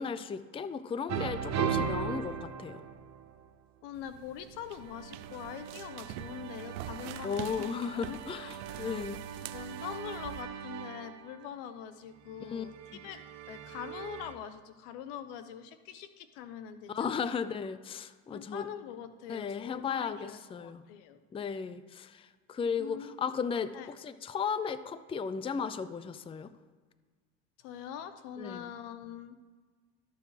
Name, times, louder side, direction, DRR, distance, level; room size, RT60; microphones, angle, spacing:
voice 1, 0.0-2.8 7.2-9.2 12.5-12.6 12.9-13.0 16.9-18.7 19.3-20.8 21.3-23.7 24.0-26.5 28.4-28.7, left 6 dB, 15° left, 14 dB, 0.4 m, -35 dB
sound 1, 1.1-3.5 4.7-11.4 12.4-14.3, right 7 dB, 50° right, 1.0 m, -39 dB
voice 2, 3.8-8.9 9.5-13.2 13.5-17.4 18.3-21.2 22.8-23.1 23.7-23.9 27.6-29.4, left 9 dB, 85° left, 11 dB, 0.8 m, -44 dB
sound 2, 3.9-10.4, right 12 dB, 90° right, 0.5 m, -46 dB
12.5 x 6.8 x 3.2 m, 1.5 s
supercardioid pair, 90°, 35 cm